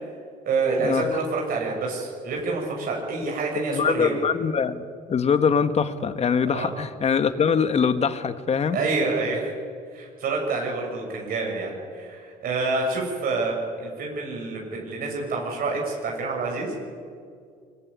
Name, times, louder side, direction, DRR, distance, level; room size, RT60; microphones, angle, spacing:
voice 1, 0.4-4.2 6.5-6.7 8.7-9.5 9.9-16.7, right 3 dB, 60° right, -1 dB, 6.7 m, -27 dB
voice 2, 3.7-4.8 5.1-8.8, left 6 dB, 40° left, 10 dB, 1.6 m, -23 dB
24.0 x 22.5 x 9.8 m, 2.2 s
cardioid pair, 110°, 17 cm